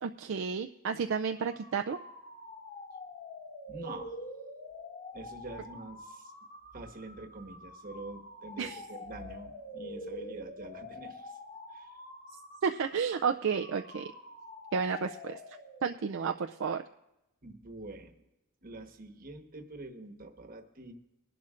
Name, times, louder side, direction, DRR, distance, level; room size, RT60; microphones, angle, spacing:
voice 1, 0.0-2.0 8.6-8.8 12.6-14.1 14.7-15.4 15.8-16.8, right 6 dB, 60° right, 6 dB, 0.4 m, -31 dB
sound 1, 1.3-16.0, left 1 dB, 45° left, 4.7 m, -46 dB
voice 2, 3.7-4.2 5.1-6.3 6.7-11.4 11.7-12.0 17.4-18.1 18.6-20.9, right 2 dB, 40° right, 4 dB, 1.2 m, -45 dB
21.5 x 11.5 x 2.5 m, 0.94 s
head